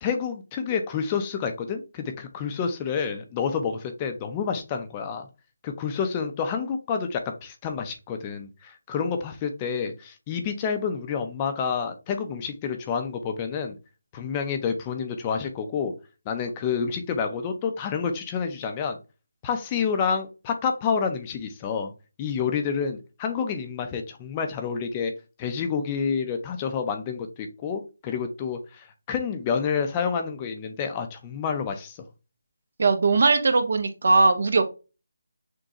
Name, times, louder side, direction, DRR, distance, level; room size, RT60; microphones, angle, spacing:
voice 1, 0.0-5.3 5.6-13.8 14.1-15.9 16.3-19.0 19.4-21.9 22.2-25.1 25.4-32.0, left 6 dB, 20° left, 6 dB, 0.6 m, -29 dB
voice 2, 32.8-34.6, right 3 dB, 55° right, 8 dB, 0.8 m, -20 dB
6.2 x 2.2 x 2.9 m, 0.30 s
figure-of-eight pair, 165°, 0 cm